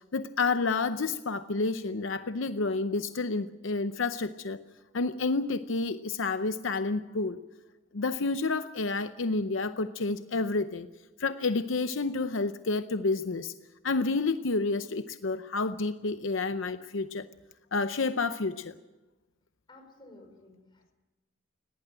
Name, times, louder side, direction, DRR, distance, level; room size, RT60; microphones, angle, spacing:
voice 1, 0.1-4.6 4.9-7.4 7.9-10.9 11.2-13.5 13.8-17.2 17.7-18.7, left 3 dB, 75° left, 10 dB, 0.7 m, -29 dB
voice 2, 19.7-20.9, left 2 dB, 25° left, 3 dB, 5.6 m, -54 dB
20.0 x 18.0 x 8.9 m, 1.1 s
head